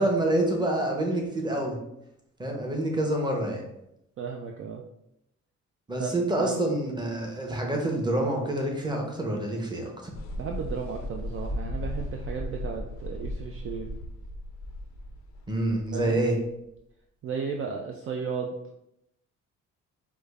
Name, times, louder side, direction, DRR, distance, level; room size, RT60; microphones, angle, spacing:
voice 1, 0.0-1.8 2.4-3.6 5.9-9.9 15.5-16.4, right 1 dB, 15° right, 1 dB, 0.8 m, -27 dB
voice 2, 4.2-4.8 6.0-6.1 6.4-6.5 10.4-13.9 15.9-16.2 17.2-18.5, right 6 dB, 45° right, 1 dB, 0.4 m, -34 dB
sound 1, 10.1-16.8, left 1 dB, 70° left, 0.5 m, -36 dB
4.9 x 2.1 x 2.4 m, 0.81 s
cardioid pair, 90°, 30 cm